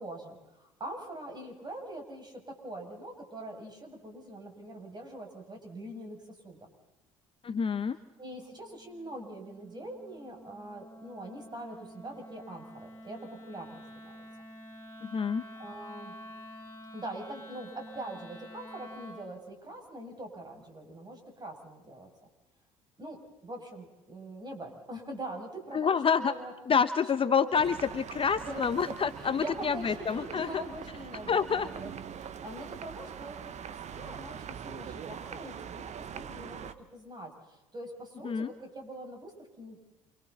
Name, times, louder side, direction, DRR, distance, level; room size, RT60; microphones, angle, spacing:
voice 1, 0.0-6.6 8.2-14.1 15.6-16.2 16.9-22.1 23.0-26.5 27.2-27.5 28.4-31.9 32.2-39.8, right 1 dB, 25° right, 2 dB, 7.2 m, -43 dB
voice 2, 7.4-8.0 15.0-15.4 25.7-26.3 26.7-30.5 31.3-31.7 38.2-38.5, left 6 dB, 30° left, 11 dB, 1.1 m, -27 dB
Wind instrument woodwind instrument, 7.8-19.3, equal, 15° left, 6.1 m, -49 dB
sound 1, 27.5-36.7, right 8 dB, 45° right, 1.3 m, -43 dB
28.5 x 24.5 x 4.2 m, 1.0 s
hypercardioid pair, 60°, 17 cm